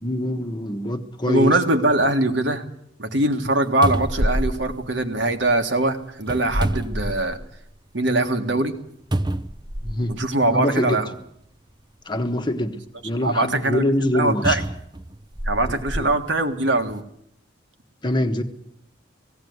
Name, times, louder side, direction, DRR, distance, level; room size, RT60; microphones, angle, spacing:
voice 1, 0.0-1.5 9.8-10.2 10.5-11.0 12.1-12.8 13.0-14.6 15.7-16.0 18.0-18.4, left 1 dB, 25° left, 6 dB, 1.2 m, -24 dB
voice 2, 1.3-2.6 3.0-7.4 7.9-8.7 10.1-11.2 13.2-14.6 15.5-17.0, right 2 dB, 65° right, 5 dB, 1.8 m, -22 dB
sound 1, 3.4-3.5 3.8-5.5 6.2-7.6 8.1-8.2 9.1-10.2 11.2-11.3 14.4-16.1 16.8-16.9, right 1 dB, 20° right, 0.8 m, -27 dB
18.0 x 16.5 x 9.5 m, 0.75 s
head